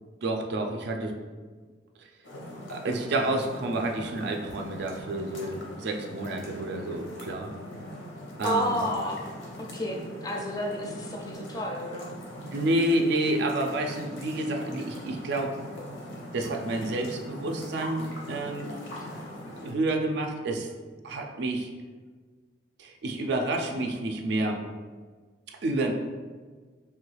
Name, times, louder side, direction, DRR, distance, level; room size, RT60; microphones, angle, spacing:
voice 1, 0.2-1.1 2.7-7.5 8.4-8.8 12.5-15.5 16.3-18.7 19.5-20.7 21.0-21.7 22.8-24.6 25.6-25.9, right 2 dB, 65° right, 3 dB, 0.4 m, -29 dB
sound 1, 2.2-19.7, equal, 90° left, 0.8 m, -41 dB
voice 2, 8.4-9.2 9.6-12.1, equal, 20° left, 0 dB, 0.4 m, -30 dB
3.2 x 2.3 x 3.1 m, 1.4 s
head